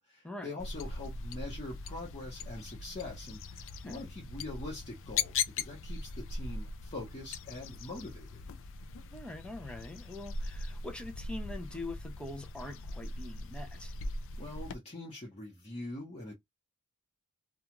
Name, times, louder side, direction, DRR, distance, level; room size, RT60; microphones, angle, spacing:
voice 1, 0.0-8.4 14.4-16.3, left 2 dB, 30° left, 1.0 m, -43 dB
sound 1, 0.6-14.8, left 4 dB, 60° left, 0.4 m, -40 dB
voice 2, 9.1-13.9, left 2 dB, 5° left, 0.5 m, -43 dB
2.4 x 2.3 x 2.9 m
head